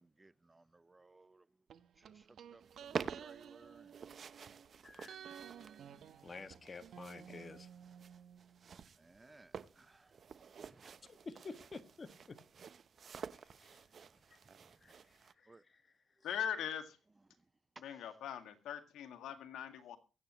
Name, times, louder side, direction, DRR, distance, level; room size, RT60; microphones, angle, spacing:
voice 1, 0.0-1.5 2.0-3.9 5.5-5.8 7.4-7.5 9.0-10.2 10.6-11.0 13.1-13.2 14.6-14.9 15.5-15.6 17.9-18.0, right 2 dB, 20° right, 0.5 m, -63 dB
sound 1, 1.7-4.7 5.1-8.9 9.1-9.2, right 8 dB, 65° right, 1.2 m, -54 dB
sound 2, 2.6-15.3, right 6 dB, 50° right, 0.9 m, -49 dB
voice 2, 4.8-5.2 6.2-7.7 11.1-12.4 13.3-13.8 14.3-14.4 14.8-15.0 15.4-15.8, left 4 dB, 30° left, 1.8 m, -51 dB
voice 3, 16.2-17.0 17.8-20.0, left 9 dB, 80° left, 2.0 m, -41 dB
23.5 x 8.8 x 3.1 m
cardioid pair, 90°, 0 cm